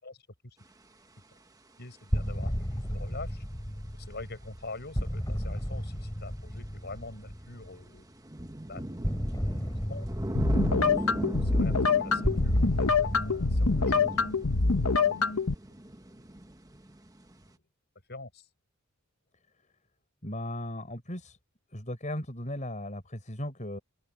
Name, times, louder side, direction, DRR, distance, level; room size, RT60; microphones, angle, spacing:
voice 1, 0.0-0.6 1.8-3.4 3.9-8.1 8.7-8.8 9.9-10.1 10.7-11.0 11.4-14.1 18.1-18.5, left 2 dB, 50° left, 6.3 m, -44 dB
sound 1, 0.7-0.8 6.5-17.5, right 1 dB, 15° right, 1.1 m, -38 dB
sound 2, 2.1-7.9 9.0-15.3, equal, 15° left, 5.0 m, -34 dB
sound 3, 10.4-15.5, left 4 dB, 85° left, 1.4 m, -25 dB
voice 2, 20.2-21.4 21.7-23.8, left 1 dB, 35° left, 7.0 m, -37 dB
head